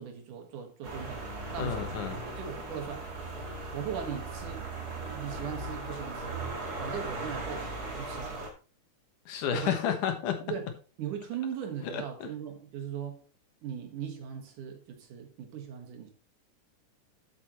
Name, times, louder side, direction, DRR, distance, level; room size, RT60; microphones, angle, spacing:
voice 1, 0.0-1.9 2.4-3.1 3.7-4.7 5.1-6.4 6.8-8.4 9.5-9.8 10.4-10.7 11.0-13.2 13.6-16.1, right 8 dB, 90° right, 3.3 m, -39 dB
sound 1, 0.8-8.5, right 2 dB, 35° right, 2.4 m, -38 dB
voice 2, 1.6-2.2 9.3-10.4 11.8-12.3, left 9 dB, 85° left, 2.9 m, -31 dB
11.0 x 8.4 x 3.1 m
omnidirectional pair, 3.5 m